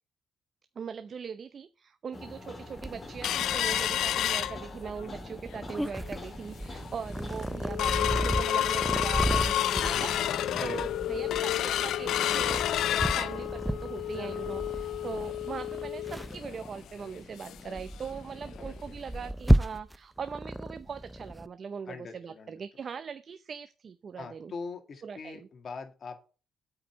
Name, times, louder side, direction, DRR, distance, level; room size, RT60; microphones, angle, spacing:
voice 1, 0.8-24.5 25.0-25.5, right 6 dB, 50° right, 11 dB, 0.6 m, -41 dB
sound 1, 2.1-15.3, left 1 dB, 30° left, 2.7 m, -47 dB
Purr, 2.8-21.5, equal, ahead, 0.5 m, -34 dB
sound 2, 3.2-5.1 5.5-5.6 5.9-6.3 6.8-6.9 7.2-17.7 18.1-18.2 18.5-18.7 19.2-19.3, left 12 dB, 80° left, 0.3 m, -30 dB
voice 2, 10.5-11.0 18.6-19.0 21.9-22.6 24.2-26.2, left 4 dB, 50° left, 5 dB, 2.0 m, -42 dB
8.4 x 4.9 x 7.2 m, 0.35 s
cardioid pair, 90°, 0 cm